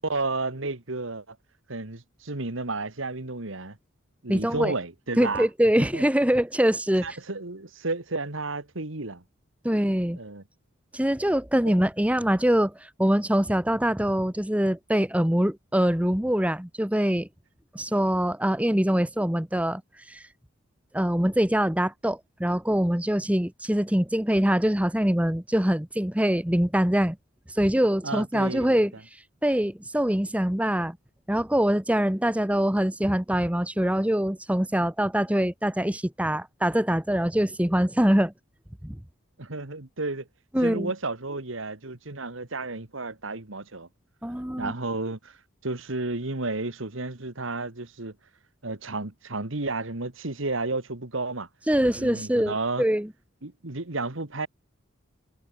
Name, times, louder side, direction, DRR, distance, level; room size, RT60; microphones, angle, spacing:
voice 1, 0.0-1.4 1.7-3.8 4.2-5.5 5.8-6.0 7.0-9.2 10.2-10.4 11.7-11.8 28.0-28.9 39.4-40.3 40.6-43.9 44.6-45.4 45.6-48.1 48.6-51.5 52.0-52.8 53.4-54.5, right 3 dB, 70° right, 2.0 m, -32 dB
voice 2, 4.3-4.7 5.2-7.1 9.6-10.2 10.9-17.3 17.7-19.8 20.1-20.2 20.9-27.2 27.5-28.9 29.4-31.0 31.3-38.3 38.8-39.0 40.5-40.9 44.2-44.7 51.7-53.1, equal, 5° right, 1.1 m, -24 dB
head